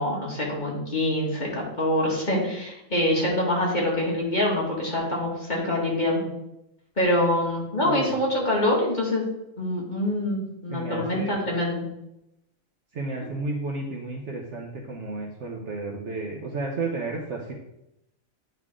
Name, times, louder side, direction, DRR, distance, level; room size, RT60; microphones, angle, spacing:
voice 1, 0.0-6.2 7.0-9.2 9.6-11.8, left 1 dB, 35° left, -4 dB, 2.0 m, -25 dB
voice 2, 7.8-8.1 10.7-11.4 12.9-17.5, right 3 dB, 60° right, 0 dB, 1.2 m, -32 dB
9.4 x 5.7 x 3.7 m, 0.85 s
omnidirectional pair, 1.4 m